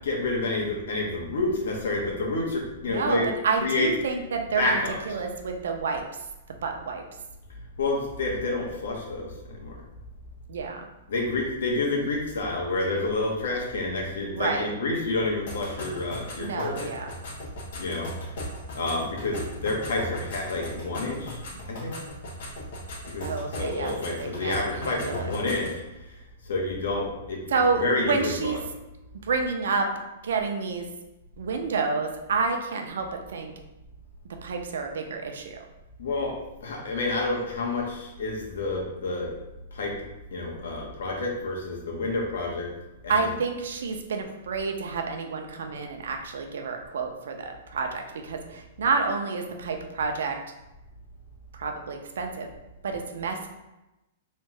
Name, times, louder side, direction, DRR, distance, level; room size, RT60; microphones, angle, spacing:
voice 1, 0.0-3.9 4.5-5.2 7.8-9.8 11.1-16.9 17.7-18.3 18.7-21.4 21.7-21.9 23.0-23.3 23.6-25.8 26.1-26.2 26.4-28.6 36.0-36.3 36.6-39.3 39.7-39.9 40.3-42.7 43.0-43.3, left 2 dB, 80° left, -1 dB, 1.1 m, -29 dB
voice 2, 2.9-6.0 6.6-7.0 10.5-10.8 14.3-14.7 16.4-17.1 23.2-25.3 27.5-28.6 29.2-29.9 30.2-30.9 31.4-33.5 34.4-35.6 43.1-50.4 51.5-52.5 52.8-53.5, right 4 dB, 75° right, 4 dB, 0.6 m, -29 dB
sound 1, 15.5-25.8, left 1 dB, 50° left, 1.0 m, -38 dB
3.6 x 3.3 x 3.2 m, 0.97 s
hypercardioid pair, 180°, 0 cm